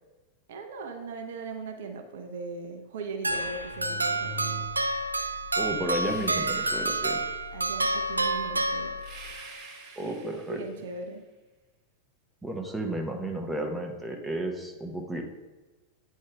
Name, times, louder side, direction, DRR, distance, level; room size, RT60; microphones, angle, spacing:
voice 1, 0.5-4.7 7.5-9.0 10.0-11.2, right 3 dB, 55° right, 5 dB, 0.7 m, -39 dB
sound 1, 3.2-9.4, right 2 dB, 80° right, 0.3 m, -29 dB
sound 2, 3.3-9.3, left 3 dB, 55° left, 1.4 m, -44 dB
voice 2, 5.5-7.2 10.0-10.6 12.4-15.2, right 1 dB, 5° right, 2 dB, 0.9 m, -33 dB
sound 3, 6.0-7.6 9.0-11.1, right 4 dB, 35° right, 1.4 m, -48 dB
8.5 x 3.7 x 4.6 m, 1.2 s
figure-of-eight pair, 90°, 0 cm